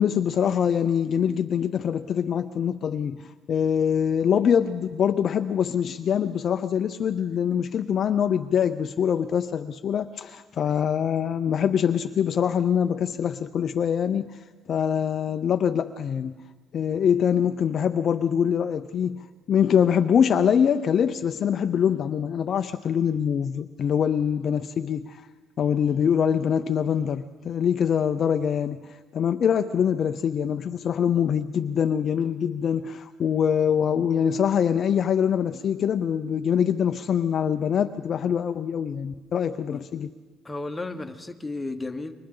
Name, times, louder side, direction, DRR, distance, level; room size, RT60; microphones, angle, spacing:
voice 1, 0.0-14.4 14.7-16.3 16.7-19.2 19.5-25.2 25.6-40.1, left 8 dB, 40° left, 9 dB, 0.5 m, -24 dB
voice 2, 40.4-42.1, left 2 dB, 10° left, 5 dB, 1.2 m, -33 dB
28.5 x 24.0 x 3.8 m, 1.4 s
cardioid pair, 145°, 0 cm